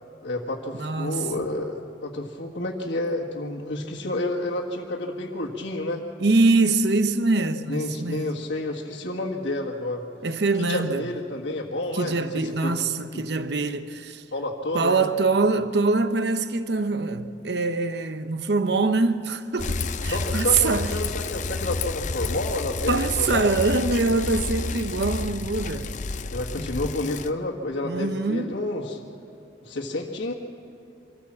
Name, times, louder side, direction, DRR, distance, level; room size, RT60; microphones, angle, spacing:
voice 1, 0.2-6.0 7.7-10.0 10.6-12.7 13.1-13.3 14.3-15.1 20.1-23.5 26.3-29.0 29.6-30.3, left 2 dB, 70° left, 1.6 m, -30 dB
voice 2, 0.7-1.5 6.2-8.3 10.2-11.1 11.9-14.2 14.7-20.9 22.9-26.0 26.6-26.7 27.8-28.6, right 3 dB, 60° right, 0.8 m, -24 dB
Bicycle, 19.6-27.3, left 3 dB, 40° left, 0.6 m, -30 dB
25.0 x 14.5 x 7.4 m
head